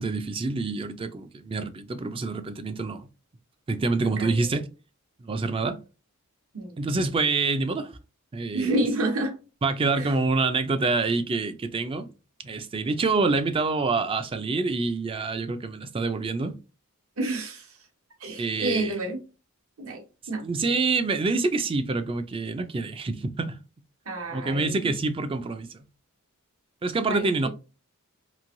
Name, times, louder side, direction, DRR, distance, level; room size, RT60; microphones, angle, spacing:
voice 1, 0.0-3.1 3.7-4.7 5.2-5.8 6.8-8.0 8.3-8.8 9.6-12.1 12.4-16.6 18.4-19.0 20.4-23.6 24.3-25.8 26.8-27.5, right 3 dB, 25° right, 0.3 m, -26 dB
voice 2, 4.0-4.4 6.5-6.8 8.5-9.4 10.0-10.1 17.2-17.7 18.2-19.2 19.8-20.0 20.3-20.4 24.1-24.8 27.1-27.5, right 2 dB, 70° right, 1.1 m, -29 dB
3.1 x 2.6 x 2.5 m
head